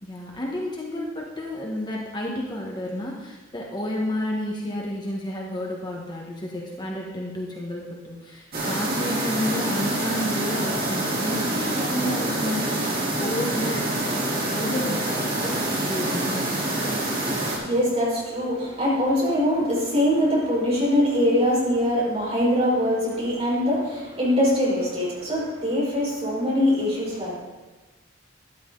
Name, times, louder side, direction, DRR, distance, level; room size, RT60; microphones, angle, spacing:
voice 1, 0.0-13.9 14.4-16.5, left 1 dB, 25° left, -2 dB, 1.5 m, -31 dB
sound 1, 8.5-17.6, right 1 dB, 50° right, 3.2 m, -26 dB
voice 2, 17.2-27.4, equal, 30° right, -6 dB, 4.9 m, -23 dB
12.5 x 11.5 x 3.9 m, 1.2 s
head